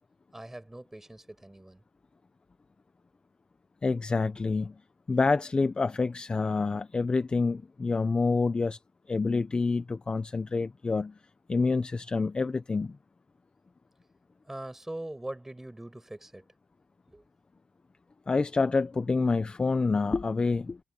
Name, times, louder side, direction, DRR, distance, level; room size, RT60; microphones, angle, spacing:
voice 1, 0.3-1.8 14.5-16.5 17.1-17.2, right 1 dB, 10° right, 6.2 m, -41 dB
voice 2, 3.8-4.7 5.1-8.8 9.1-11.2 11.5-13.0 18.3-20.8, left 4 dB, 20° left, 0.5 m, -27 dB
wide cardioid pair, 160°, 5 cm